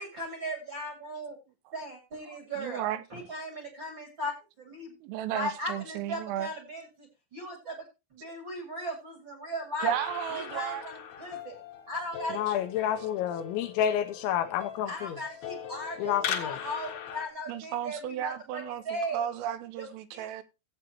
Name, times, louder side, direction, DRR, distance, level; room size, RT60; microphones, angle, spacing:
voice 1, 0.0-1.4 1.7-2.8 3.1-4.9 5.3-7.7 8.1-9.9 10.3-11.5 11.9-12.6 14.9-19.2 19.8-19.9 20.1-20.3, equal, 50° right, 1.4 m, -37 dB
voice 2, 2.3-3.0 5.0-6.5 9.8-10.8 17.5-18.8 19.1-20.4, right 11 dB, 85° right, 3.4 m, -34 dB
sound 1, 9.8-17.3, left 9 dB, 65° left, 2.7 m, -40 dB
voice 3, 12.3-15.2 16.0-16.6, left 10 dB, 80° left, 2.8 m, -29 dB
16.5 x 8.2 x 2.9 m
omnidirectional pair, 5.8 m